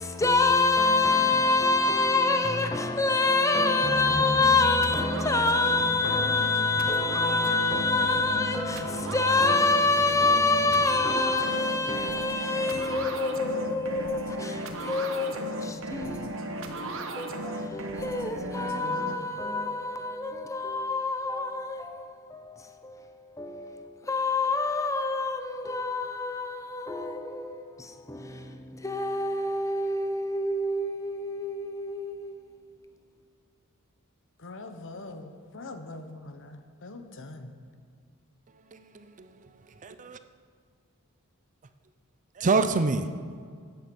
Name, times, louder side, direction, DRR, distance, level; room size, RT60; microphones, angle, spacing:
voice 1, 0.0-32.4, left 3 dB, 15° left, 0.8 m, -26 dB
sound 1, 3.5-19.1, right 1 dB, 60° right, 1.2 m, -36 dB
voice 2, 34.4-37.5, left 2 dB, 60° left, 1.0 m, -42 dB
voice 3, 38.5-40.2 42.3-43.5, right 3 dB, 35° right, 0.5 m, -28 dB
13.5 x 9.3 x 5.3 m
head